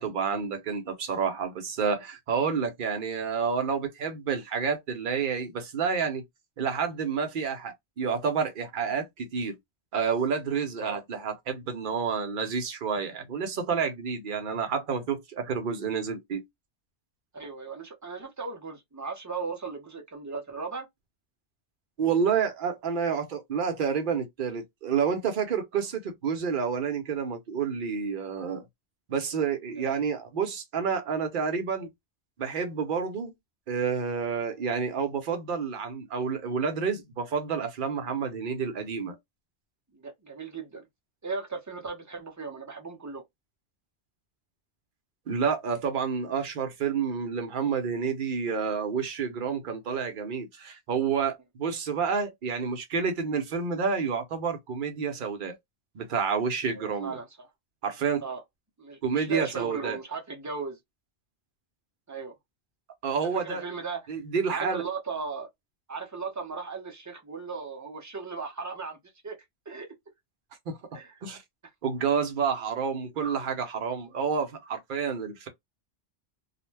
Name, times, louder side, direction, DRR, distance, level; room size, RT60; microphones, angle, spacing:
voice 1, 0.0-6.2 6.6-9.6 9.9-16.4 22.0-28.7 29.1-31.9 32.4-33.3 33.7-39.2 45.3-55.5 55.9-57.1 57.8-58.2 59.0-60.0 63.0-63.6 64.1-64.8 70.7-71.4 71.8-75.5, right 6 dB, 55° right, 0.8 m, -29 dB
voice 2, 17.3-20.9 39.9-40.9 41.2-43.2 56.7-57.5 58.2-58.4 58.8-60.8 62.1-62.3 63.3-64.1 64.5-65.5 65.9-69.0 69.2-69.4 69.7-69.9 70.9-71.1, right 4 dB, 25° right, 0.5 m, -37 dB
2.4 x 2.1 x 3.2 m
omnidirectional pair, 1.1 m